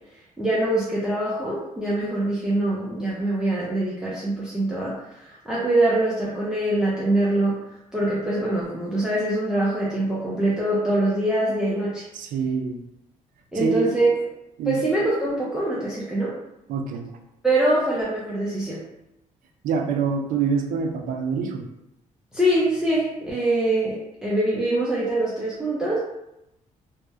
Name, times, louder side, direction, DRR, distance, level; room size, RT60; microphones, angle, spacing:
voice 1, 0.4-7.6 7.9-12.1 13.5-14.2 14.7-16.4 17.4-18.8 22.3-26.0, right 1 dB, 5° right, -7 dB, 0.4 m, -24 dB
voice 2, 12.1-12.8 13.6-13.9 14.6-14.8 16.7-17.1 19.6-21.6, right 5 dB, 80° right, 4 dB, 0.4 m, -25 dB
2.7 x 2.0 x 2.2 m, 0.87 s
cardioid pair, 140°, 14 cm